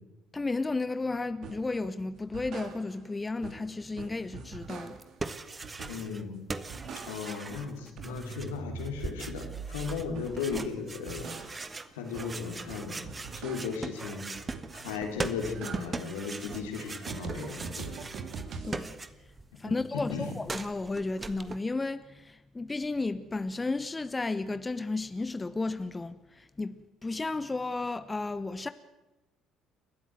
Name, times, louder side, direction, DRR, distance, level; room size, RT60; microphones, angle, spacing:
voice 1, 0.3-5.0 18.6-19.0 19.6-26.7 27.0-28.7, left 3 dB, 20° left, 1.0 m, -33 dB
sound 1, 1.4-1.7 2.2-3.1 3.4-5.2 5.6-6.2 6.5-7.5 7.8-10.5 10.9-13.9 14.3-14.9 15.3-18.9, right 5 dB, 55° right, 2.7 m, -43 dB
sound 2, 4.9-6.2 6.5-19.5 19.7-21.6, right 3 dB, 25° right, 1.6 m, -40 dB
voice 2, 5.9-6.4 7.1-11.6 11.9-13.0 13.4-14.2 14.7-17.9 19.6-19.8 20.1-20.3, left 5 dB, 75° left, 3.6 m, -36 dB
30.0 x 13.5 x 7.8 m
figure-of-eight pair, 55°, 0 cm